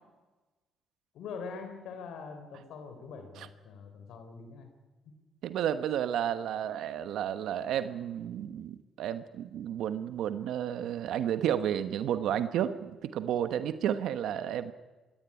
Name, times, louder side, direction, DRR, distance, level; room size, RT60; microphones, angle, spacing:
voice 1, 1.1-4.7 5.1-5.2, left 5 dB, 80° left, 7 dB, 3.5 m, -43 dB
voice 2, 5.4-14.7, right 10 dB, 80° right, 11 dB, 1.1 m, -32 dB
22.0 x 16.5 x 9.9 m, 1.2 s
cardioid pair, 90°, 0 cm